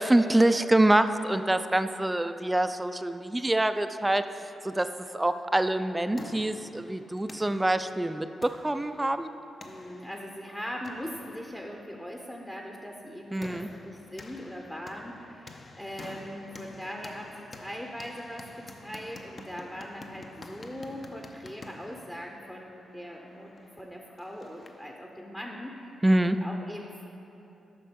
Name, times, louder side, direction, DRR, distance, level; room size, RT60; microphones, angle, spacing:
voice 1, 0.0-4.3 4.6-4.9 5.1-9.3 13.3-13.7 26.0-26.4, right 1 dB, 15° right, 10 dB, 0.3 m, -25 dB
sound 1, 5.8-25.0, left 2 dB, 45° left, 0.6 m, -49 dB
voice 2, 9.6-27.1, equal, 10° left, 1 dB, 0.7 m, -40 dB
7.5 x 5.4 x 5.2 m, 2.9 s
cardioid pair, 60°, 0 cm